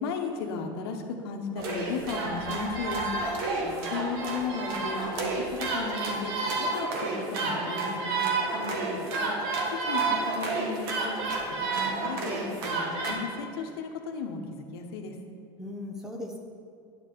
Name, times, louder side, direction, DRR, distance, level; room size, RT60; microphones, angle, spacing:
voice 1, 0.0-3.1 3.8-5.2 5.5-8.2 9.2-9.3 9.9-11.2 11.6-15.1, left 5 dB, 85° left, 3 dB, 1.1 m, -35 dB
sound 1, 1.6-13.1, right 3 dB, 75° right, 1.6 m, -30 dB
voice 2, 3.5-4.0 8.5-9.1 15.6-16.4, left 2 dB, 5° right, 1 dB, 0.9 m, -39 dB
9.7 x 6.9 x 4.6 m, 2.5 s
supercardioid pair, 155°, 13 cm